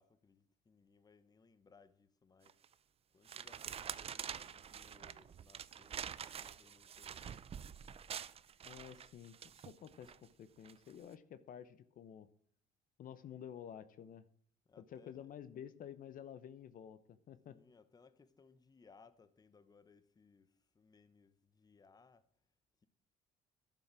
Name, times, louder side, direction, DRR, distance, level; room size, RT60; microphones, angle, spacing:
voice 1, 0.0-2.6 3.1-7.8 14.7-15.3 17.5-22.3, left 4 dB, 25° left, 0.9 m, -66 dB
sound 1, 2.5-2.7 3.3-10.2 10.6-10.9, right 8 dB, 35° right, 0.5 m, -47 dB
voice 2, 8.6-12.3 13.0-14.2 14.8-17.6, left 9 dB, 55° left, 0.8 m, -51 dB
11.5 x 7.0 x 6.0 m
cardioid pair, 110°, 17 cm